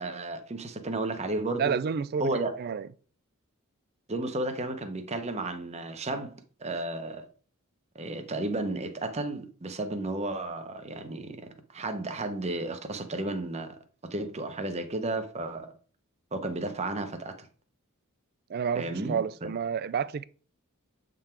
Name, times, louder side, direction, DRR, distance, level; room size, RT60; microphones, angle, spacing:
voice 1, 0.0-1.8 2.2-2.5 4.1-6.3 6.6-7.3 7.9-13.8 14.0-15.7 16.3-17.5 18.7-19.5, right 2 dB, 30° right, 0.9 m, -33 dB
voice 2, 1.6-2.9 18.5-20.2, right 7 dB, 45° right, 0.3 m, -30 dB
8.0 x 3.8 x 4.4 m
head